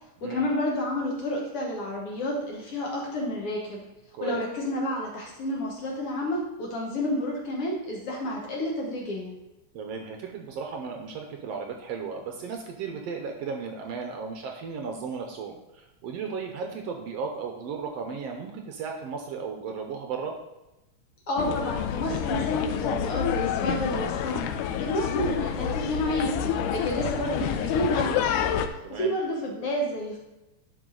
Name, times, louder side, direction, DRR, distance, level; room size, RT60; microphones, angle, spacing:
voice 1, 0.2-3.8 4.2-9.3 21.3-24.5 24.8-26.3 26.7-28.5 28.9-30.2, left 1 dB, 60° left, -2 dB, 1.7 m, -30 dB
voice 2, 9.7-20.4 28.8-29.1, right 5 dB, 75° right, 2 dB, 1.5 m, -35 dB
sound 1, 21.4-28.7, left 9 dB, 90° left, 2.1 m, -28 dB
11.0 x 4.7 x 3.8 m, 0.98 s
omnidirectional pair, 3.6 m